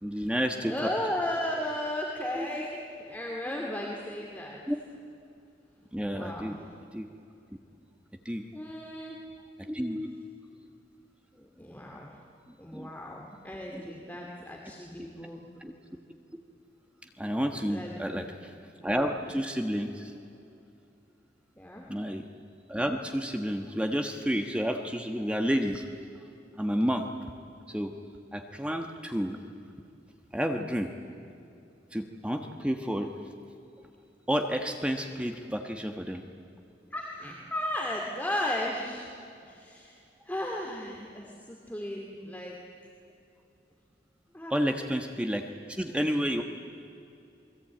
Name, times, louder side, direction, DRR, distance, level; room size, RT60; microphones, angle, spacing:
voice 1, 0.0-0.7 2.3-2.5 4.7-4.8 5.9-6.6 6.9-7.1 8.2-8.4 9.6-10.1 12.7-12.9 13.7-13.8 15.6-15.7 17.2-18.2 18.8-20.2 21.9-22.2 22.7-25.8 26.6-27.1 27.7-27.9 28.3-29.4 30.3-30.9 31.9-33.1 34.3-36.2 44.5-46.4, equal, 5° right, 4 dB, 1.3 m, -30 dB
voice 2, 0.6-4.6 6.1-6.7 8.5-9.2 11.3-12.1 12.6-15.4 17.7-18.3 21.6-21.9 36.9-39.1 39.4-42.6 44.3-44.7 45.2-45.3, left 1 dB, 10° left, -1 dB, 2.4 m, -35 dB
28.0 x 21.5 x 8.9 m, 2.6 s
head